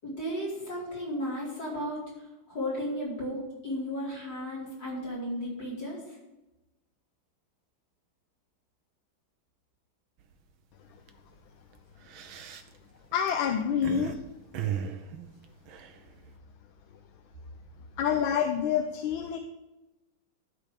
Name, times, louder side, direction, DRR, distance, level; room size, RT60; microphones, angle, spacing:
voice 1, 0.0-6.2, equal, 55° left, -4 dB, 5.4 m, -34 dB
sound 1, 10.2-10.5 10.9-11.1 11.8-14.2 14.5-16.4, right 8 dB, 75° right, 1.7 m, -36 dB
voice 2, 13.1-14.2 18.0-19.4, left 8 dB, 80° left, 7 dB, 1.5 m, -27 dB
12.0 x 5.1 x 8.2 m, 1.0 s
omnidirectional pair, 2.2 m